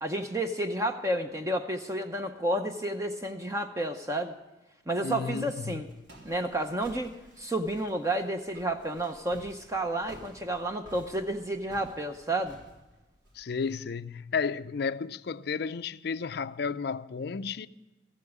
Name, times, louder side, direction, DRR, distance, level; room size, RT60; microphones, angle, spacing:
voice 1, 0.0-4.3 4.9-5.9 6.2-12.6, right 1 dB, 15° right, 0.7 m, -31 dB
voice 2, 5.0-5.8 13.3-17.7, left 5 dB, 55° left, 0.4 m, -33 dB
Walk footsteps, 5.2-13.8, equal, 70° right, 3.6 m, -54 dB
14.5 x 8.3 x 8.1 m
head